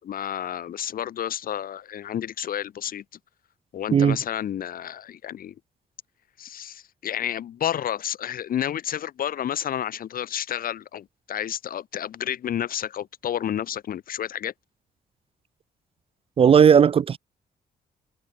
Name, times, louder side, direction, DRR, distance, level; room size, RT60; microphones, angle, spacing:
voice 1, 0.0-3.0 3.7-5.6 6.4-14.5, left 10 dB, 70° left, 5.3 m, -30 dB
voice 2, 16.4-17.2, right 7 dB, 40° right, 0.4 m, -16 dB
cardioid pair, 120°, 15 cm